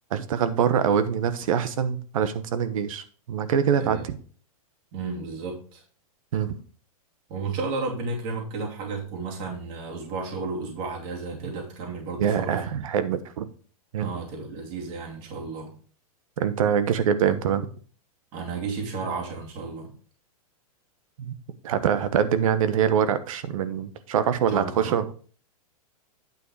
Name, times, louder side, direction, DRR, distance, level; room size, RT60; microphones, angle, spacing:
voice 1, 0.1-4.0 6.3-6.6 12.2-13.5 13.9-14.1 16.4-17.7 21.2-21.4 21.6-25.1, right 8 dB, 65° right, 13 dB, 1.1 m, -24 dB
voice 2, 4.9-5.8 7.3-12.7 14.0-15.7 18.3-19.9 24.5-25.0, right 4 dB, 35° right, 0 dB, 2.7 m, -33 dB
9.4 x 5.4 x 4.8 m, 0.42 s
supercardioid pair, 160°, 19 cm